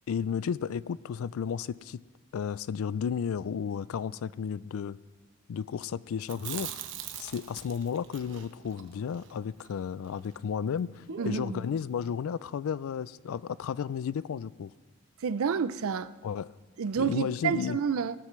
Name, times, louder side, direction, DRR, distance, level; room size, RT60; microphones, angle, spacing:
voice 1, 0.1-2.0 2.3-5.0 5.5-6.8 7.2-14.7 16.2-16.5 17.0-17.8, left 7 dB, 80° left, 0.3 m, -33 dB
Chewing mastication, 6.2-10.4 10.7-10.8 11.1-11.8, right 6 dB, 60° right, 0.9 m, -41 dB
voice 2, 15.2-16.1 16.8-18.1, right 6 dB, 80° right, 0.4 m, -29 dB
18.5 x 13.0 x 3.1 m
head